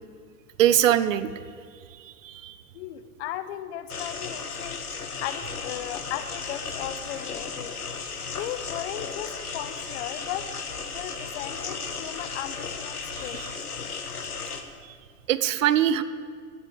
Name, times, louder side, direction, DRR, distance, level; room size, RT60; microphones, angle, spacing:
voice 1, 0.6-1.4 1.9-2.6 13.1-13.5 14.8-15.0 15.3-16.0, right 11 dB, 60° right, 14 dB, 0.8 m, -23 dB
voice 2, 2.7-4.8 5.2-7.7 8.4-10.5 10.9-13.4, left 12 dB, 50° left, 12 dB, 1.0 m, -36 dB
sound 1, 3.9-14.6, left 5 dB, 80° left, 1.4 m, -35 dB
15.0 x 8.9 x 8.0 m, 2.1 s
figure-of-eight pair, 85°, 44 cm